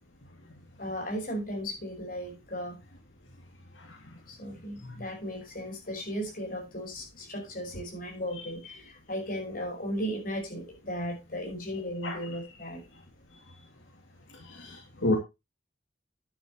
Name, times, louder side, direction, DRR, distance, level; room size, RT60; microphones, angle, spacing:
voice 1, 0.8-2.8 4.3-12.8, equal, 45° left, 6.3 m, -36 dB
voice 2, 14.5-15.2, left 2 dB, 80° left, 2.6 m, -29 dB
11.5 x 10.5 x 3.1 m
head